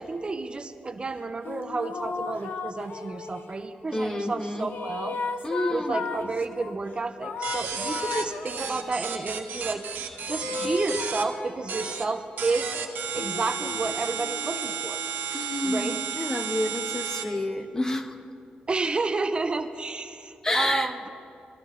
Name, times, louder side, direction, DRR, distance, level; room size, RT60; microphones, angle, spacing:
voice 1, 0.0-5.2 5.7-12.8 13.1-15.0 15.6-16.0 18.7-21.1, right 3 dB, 30° right, 9 dB, 0.6 m, -31 dB
sound 1, 1.4-3.7 4.3-6.8 7.2-9.1 10.3-12.2 13.0-15.3, left 5 dB, 80° left, 0.7 m, -36 dB
voice 2, 3.9-4.7 5.4-6.0 15.3-18.2 20.4-20.9, left 1 dB, 20° left, 7 dB, 1.0 m, -29 dB
sound 2, 7.4-11.2 11.7-12.0 12.4-17.2, right 7 dB, 85° right, 1.3 m, -33 dB
20.5 x 14.5 x 3.2 m, 2.8 s
cardioid pair, 100°, 3 cm